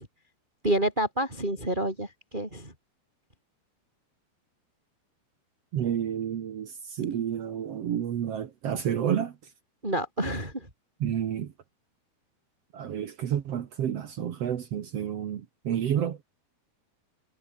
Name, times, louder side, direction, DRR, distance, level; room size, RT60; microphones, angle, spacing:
voice 1, 0.6-2.7 9.8-10.7, right 1 dB, 10° right, 7.3 m, -28 dB
voice 2, 5.7-9.3 11.0-11.5 12.7-16.2, right 9 dB, 65° right, 1.6 m, -30 dB
omnidirectional pair, 4.7 m